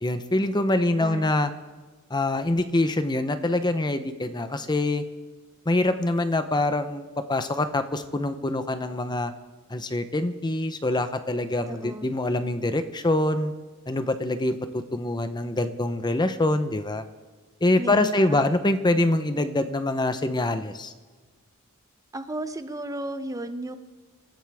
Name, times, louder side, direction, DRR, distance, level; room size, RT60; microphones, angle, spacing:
voice 1, 0.0-1.5 2.1-5.0 5.7-9.3 9.7-13.5 13.9-17.0 17.6-20.9, left 2 dB, 20° left, 9 dB, 0.8 m, -25 dB
voice 2, 1.0-1.3 11.7-12.1 17.8-18.4 22.1-23.8, right 1 dB, 15° right, 9 dB, 0.7 m, -34 dB
26.5 x 14.5 x 3.6 m, 1.4 s
head